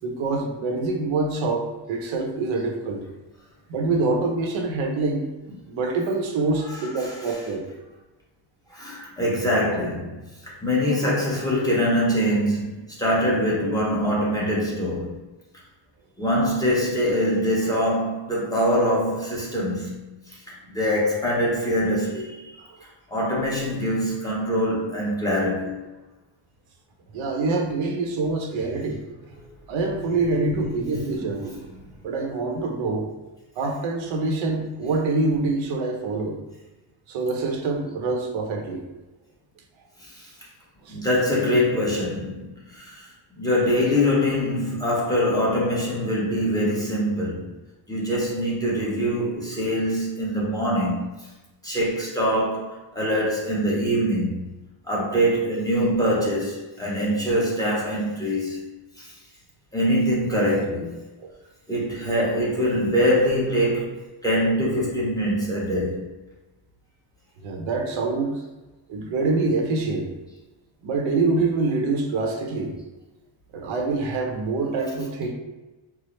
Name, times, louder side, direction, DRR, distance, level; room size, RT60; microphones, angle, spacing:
voice 1, 0.0-3.0 3.7-7.7 27.1-29.0 29.7-31.6 32.0-33.1 33.6-36.4 37.1-38.8 40.8-41.0 61.2-61.3 67.4-68.4 68.9-70.1 70.8-72.8 73.5-75.3, right 3 dB, 80° right, 2 dB, 0.8 m, -25 dB
voice 2, 6.6-7.5 8.7-15.2 16.2-22.6 23.1-25.8 29.4-29.5 29.8-30.0 30.3-30.5 31.0-31.6 40.0-40.3 40.9-47.5 47.9-51.3 51.6-54.4 54.8-58.7 59.0-59.2 59.7-61.0 61.7-66.1, equal, 10° left, -5 dB, 0.9 m, -24 dB
4.6 x 2.0 x 3.1 m, 1.1 s
cardioid pair, 140°, 46 cm